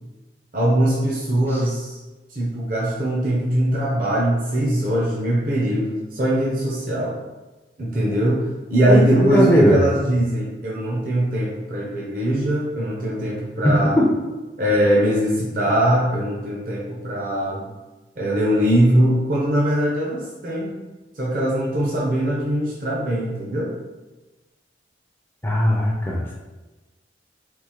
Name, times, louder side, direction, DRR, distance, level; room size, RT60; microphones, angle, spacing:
voice 1, 0.5-2.0 2.3-7.2 7.8-8.4 8.7-14.0 14.6-17.6 18.2-20.8 21.2-23.7, right 1 dB, 50° right, -5 dB, 0.6 m, -21 dB
voice 2, 8.9-9.8 13.6-14.1 25.4-26.3, equal, 10° left, -3 dB, 0.3 m, -18 dB
3.5 x 2.5 x 2.9 m, 1.2 s
head